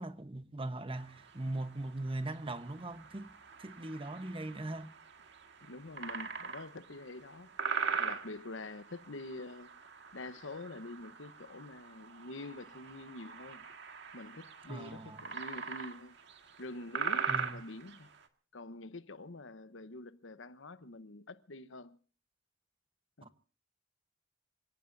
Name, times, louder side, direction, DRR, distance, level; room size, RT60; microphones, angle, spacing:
voice 1, 0.0-3.3 3.6-4.9 14.7-15.2 17.3-17.6 23.2-23.3, right 2 dB, 30° right, 1.1 m, -40 dB
sound 1, 1.0-18.2, right 5 dB, 65° right, 1.8 m, -42 dB
voice 2, 5.6-7.5 7.9-9.8 10.1-13.7 14.1-16.2 16.6-18.1 18.5-22.0 23.2-23.3, left 2 dB, 75° left, 1.0 m, -46 dB
27.5 x 17.5 x 2.7 m
head